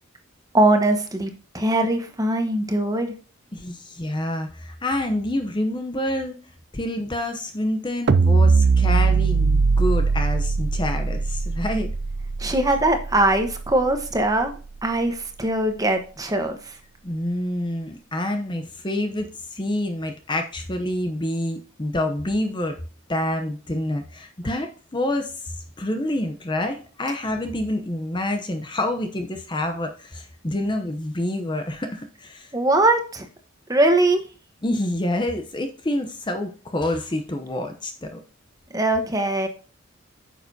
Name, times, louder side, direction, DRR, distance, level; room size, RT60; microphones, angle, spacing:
voice 1, 0.5-3.1 12.4-14.6 14.8-16.7 32.5-33.3 33.7-34.2 38.7-39.5, right 2 dB, 20° right, 5 dB, 1.0 m, -21 dB
voice 2, 3.5-6.3 6.7-11.9 17.0-22.8 23.1-25.5 25.8-32.5 34.6-38.2, left 1 dB, 25° left, 5 dB, 0.7 m, -27 dB
sound 1, 8.1-14.4, right 4 dB, 55° right, 0.4 m, -21 dB
9.0 x 6.7 x 2.7 m, 0.37 s
head